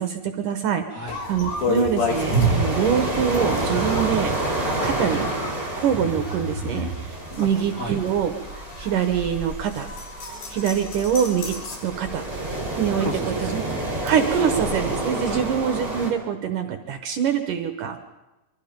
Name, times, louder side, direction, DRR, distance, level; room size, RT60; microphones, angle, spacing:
voice 1, 0.0-0.8 1.3-4.3 4.8-5.2 5.8-8.3 8.8-9.9 10.5-12.2 12.8-13.1 13.4-13.6 14.0-18.0, right 8 dB, 65° right, 7 dB, 2.3 m, -24 dB
sound 1, 1.1-11.8, equal, 65° left, 4.9 m, -30 dB
sound 2, 2.1-16.1, right 2 dB, 15° right, 4.5 m, -29 dB
voice 2, 7.4-8.0 13.0-14.0 15.2-15.5, right 1 dB, 30° left, -2 dB, 1.9 m, -34 dB
26.0 x 24.0 x 5.2 m, 1.0 s
omnidirectional pair, 4.7 m